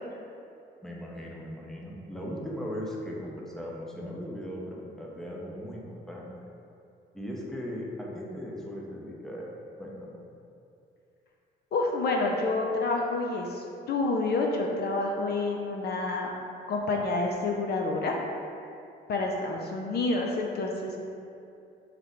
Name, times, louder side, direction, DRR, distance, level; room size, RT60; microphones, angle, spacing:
voice 1, 0.8-6.3 7.1-9.5 9.8-10.2, equal, ahead, -3 dB, 0.6 m, -38 dB
voice 2, 11.7-16.3 16.7-18.1 19.1-21.0, left 3 dB, 55° left, 0 dB, 0.4 m, -28 dB
3.2 x 3.0 x 3.7 m, 2.7 s
cardioid pair, 90°, 20 cm